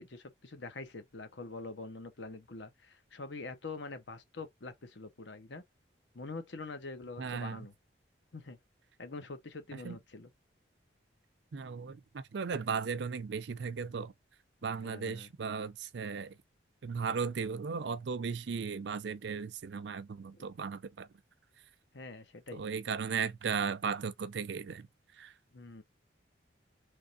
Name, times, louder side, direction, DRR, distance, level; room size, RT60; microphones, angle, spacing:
voice 1, 0.0-5.6 6.1-7.7 8.3-8.6 9.0-10.3 14.8-15.3 20.3-20.4 21.9-22.6 25.5-25.8, left 3 dB, 70° left, 0.9 m, -45 dB
voice 2, 7.2-7.7 9.7-10.0 11.5-14.1 14.6-16.3 16.8-21.1 22.5-24.9 25.2-25.3, right 5 dB, 65° right, 0.4 m, -36 dB
3.6 x 3.1 x 2.6 m
head